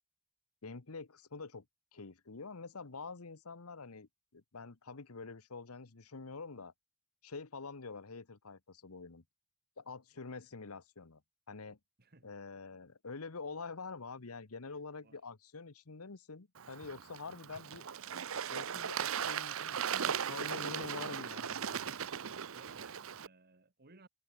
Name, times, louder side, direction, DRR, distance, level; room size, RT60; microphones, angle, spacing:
voice 1, 0.6-1.6 1.9-6.7 7.2-9.2 9.8-11.2 11.5-11.8 12.2-17.8 18.5-19.8 20.0-21.9, left 4 dB, 90° left, 1.2 m, -46 dB
voice 2, 12.0-12.3 15.0-15.2 19.7-20.2 22.2-24.1, right 2 dB, 50° right, 2.2 m, -61 dB
Bird / Water, 16.6-23.3, right 8 dB, 70° right, 0.8 m, -38 dB
head